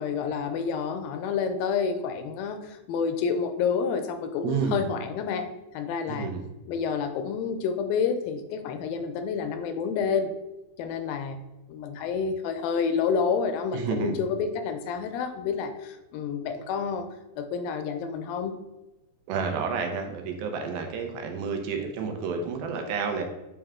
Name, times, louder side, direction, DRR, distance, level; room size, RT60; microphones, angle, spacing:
voice 1, 0.0-5.5 5.7-6.3 6.7-10.3 10.8-11.4 11.7-17.0 17.4-18.6, left 6 dB, 85° left, 8 dB, 2.3 m, -29 dB
voice 2, 4.4-4.8 6.1-6.4 13.7-14.2 19.3-23.2, right 5 dB, 85° right, 4 dB, 2.6 m, -30 dB
8.5 x 3.4 x 3.6 m, 0.98 s
omnidirectional pair, 4.1 m